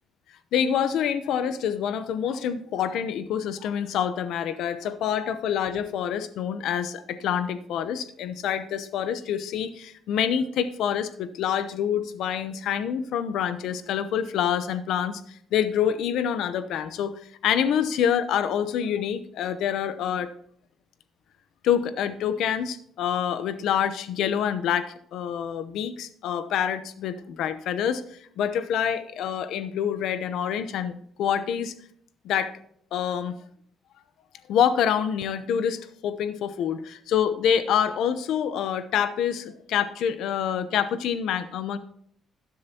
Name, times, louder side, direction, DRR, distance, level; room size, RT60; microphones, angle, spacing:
voice 1, 0.5-17.1 17.4-20.3 21.6-28.0 28.4-31.7 32.2-32.6 32.9-33.3 34.5-41.8, left 8 dB, 80° left, 12 dB, 0.8 m, -26 dB
12.0 x 10.0 x 2.9 m, 0.66 s
cardioid pair, 90°, 0 cm